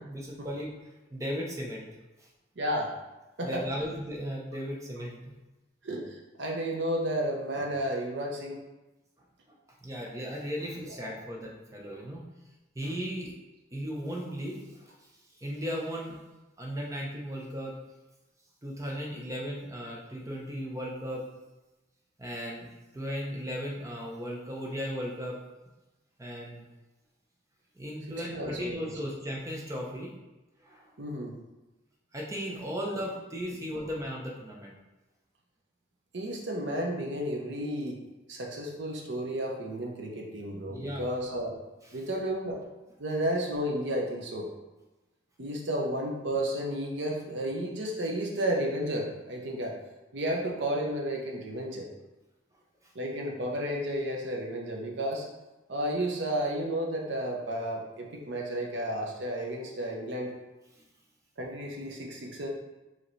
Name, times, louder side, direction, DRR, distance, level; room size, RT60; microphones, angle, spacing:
voice 1, 0.0-0.7 1.1-1.9 2.2-2.3 3.4-5.2 9.5-9.6 9.8-12.2 12.7-13.3 13.7-15.1 15.4-16.2 16.6-17.8 18.6-21.2 22.2-22.7 22.9-25.4 26.2-26.6 27.7-30.1 30.6-30.9 32.1-34.7 40.7-41.0 52.8-52.9 60.7-60.8, equal, 15° right, -2 dB, 0.6 m, -36 dB
voice 2, 2.6-2.9 3.4-3.6 5.8-8.6 10.8-11.2 28.2-28.9 31.0-31.4 36.1-38.0 38.3-41.5 41.9-42.6 43.0-44.5 45.4-49.8 50.1-51.9 52.9-55.2 55.7-60.3 61.4-62.5, right 1 dB, 70° right, 0 dB, 0.7 m, -32 dB
4.9 x 2.9 x 3.2 m, 1.1 s
head